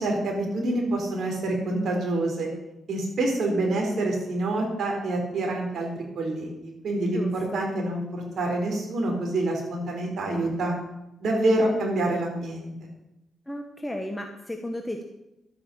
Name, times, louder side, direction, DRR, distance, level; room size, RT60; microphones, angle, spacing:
voice 1, 0.0-2.5 2.9-10.7 11.2-12.7, right 2 dB, 65° right, 1 dB, 4.3 m, -27 dB
voice 2, 7.1-7.7 13.5-15.0, left 1 dB, 10° left, 3 dB, 1.3 m, -34 dB
12.5 x 8.6 x 7.1 m, 0.90 s
cardioid pair, 90°, 0 cm